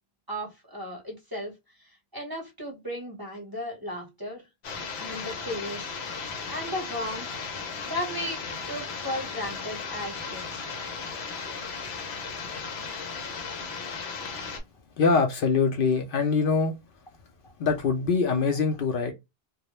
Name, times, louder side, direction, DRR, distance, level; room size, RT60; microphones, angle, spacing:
voice 1, 0.3-1.5 1.8-4.4 5.0-5.9 6.5-7.3 7.8-8.4 8.7-10.6, equal, 25° right, 0.8 m, -35 dB
sound 1, 4.6-14.6, left 5 dB, 90° left, 0.9 m, -36 dB
voice 2, 15.0-16.8 17.6-19.1, left 5 dB, 65° left, 0.7 m, -23 dB
2.3 x 2.0 x 2.8 m
omnidirectional pair, 1.1 m